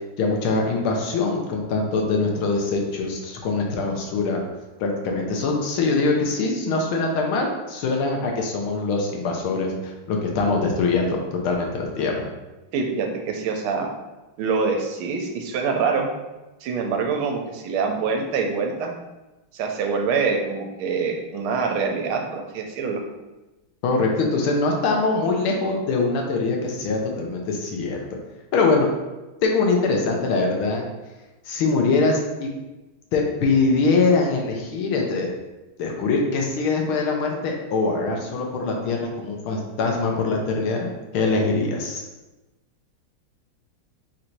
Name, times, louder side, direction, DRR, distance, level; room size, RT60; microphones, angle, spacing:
voice 1, 0.2-4.4 4.8-12.3 23.8-28.0 28.5-28.9 29.4-30.8 31.4-32.5 33.1-35.3 35.8-40.9 41.1-42.0, left 3 dB, 85° left, 1 dB, 1.7 m, -23 dB
voice 2, 12.7-13.9 14.4-16.1 16.6-18.9 19.5-23.0, right 5 dB, 80° right, 3 dB, 1.5 m, -25 dB
4.3 x 2.6 x 4.4 m, 1.1 s
omnidirectional pair, 2.3 m